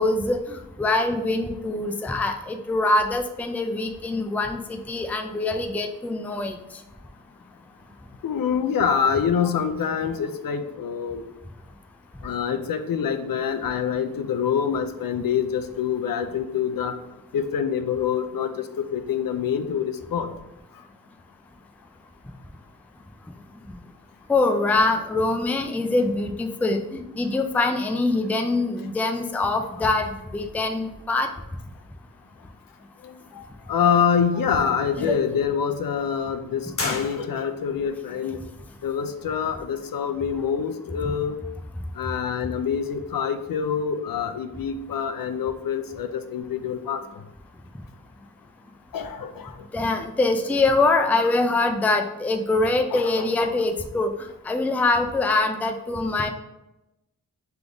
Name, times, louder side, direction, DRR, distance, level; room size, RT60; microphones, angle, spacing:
voice 1, 0.0-6.6 24.3-31.3 35.0-35.2 49.7-56.3, left 2 dB, 5° left, 6 dB, 0.3 m, -24 dB
voice 2, 8.2-11.2 12.2-16.9 17.3-18.6 18.9-20.3 29.8-29.9 33.0-33.4 33.7-38.4 38.8-41.4 42.0-47.0 48.9-49.5 52.9-53.5, left 7 dB, 70° left, 9 dB, 0.5 m, -26 dB
sound 1, 36.8-37.8, left 2 dB, 40° left, 1.0 m, -31 dB
3.5 x 3.4 x 3.8 m, 0.92 s
wide cardioid pair, 100°, 35 cm